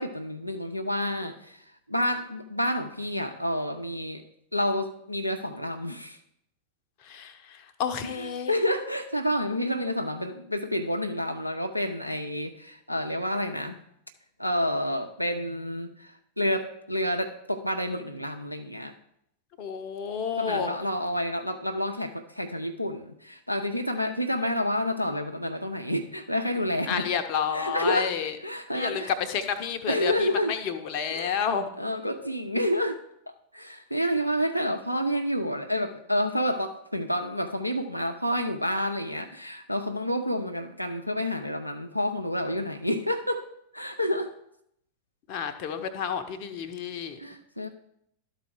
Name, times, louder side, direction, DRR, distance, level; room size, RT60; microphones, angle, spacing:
voice 1, 0.0-4.2 4.5-6.2 8.0-13.8 14.4-18.9 20.4-27.1 27.5-28.1 28.4-29.1 29.9-30.5 31.1-31.4 31.8-33.0 33.5-43.4 43.7-44.3 47.2-47.7, equal, 90° left, 4 dB, 0.6 m, -29 dB
voice 2, 7.0-8.5 19.6-20.8 26.9-28.3 28.7-29.0 29.3-31.7 45.3-47.2, left 7 dB, 45° left, 8 dB, 0.8 m, -30 dB
12.0 x 4.1 x 4.7 m, 0.74 s
figure-of-eight pair, 90°, 0 cm